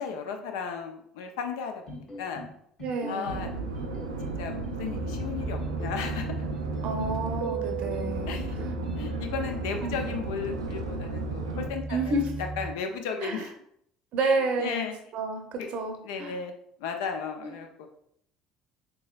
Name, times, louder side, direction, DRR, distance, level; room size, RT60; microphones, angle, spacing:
voice 1, 0.0-2.4 3.1-3.5 4.2-6.5 8.3-8.6 8.9-12.2 12.6-13.5 14.2-14.9 15.6-15.7 16.0-16.5 16.8-17.9, left 6 dB, 70° left, 5 dB, 0.4 m, -35 dB
sound 1, 1.9-2.5 2.8-3.4 3.7-4.3 4.6-5.2 5.6-6.2 6.5-7.1 7.4-8.0 8.4-9.0, left 1 dB, 40° left, 1.2 m, -41 dB
voice 2, 2.8-3.5 6.8-8.8 9.8-10.1 11.9-12.3 13.2-13.4 14.1-14.9 15.1-16.3 17.4-17.6, right 2 dB, 60° right, 4 dB, 0.6 m, -30 dB
sound 2, 3.3-11.7, right 4 dB, 90° right, 0.3 m, -34 dB
sound 3, 5.0-12.7, right 1 dB, 10° right, 0.5 m, -37 dB
3.8 x 2.9 x 2.3 m, 0.69 s
hypercardioid pair, 65°, 2 cm